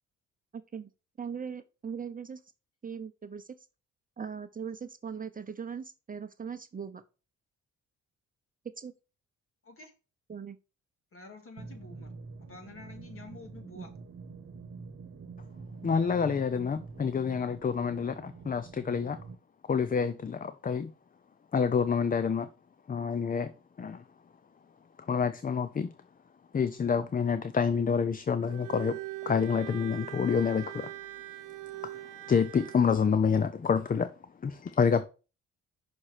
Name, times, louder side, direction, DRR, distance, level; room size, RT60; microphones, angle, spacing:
voice 1, 1.2-2.4 2.8-3.6 4.2-7.0 8.8-8.9 10.3-10.6 13.7-13.9, right 6 dB, 30° right, 0.8 m, -39 dB
voice 2, 11.1-13.9, left 3 dB, 45° left, 2.3 m, -49 dB
sound 1, 11.6-19.4, right 4 dB, 45° right, 1.2 m, -46 dB
voice 3, 15.8-19.2 19.7-20.9 21.5-22.5 22.9-23.5 23.8-24.0 25.1-25.9 26.5-30.9 31.9-32.0 32.3-34.1 34.4-35.1, left 6 dB, 30° left, 0.6 m, -28 dB
Bowed string instrument, 28.4-32.9, right 17 dB, 90° right, 0.9 m, -42 dB
6.1 x 4.4 x 6.5 m
cardioid pair, 90°, 30 cm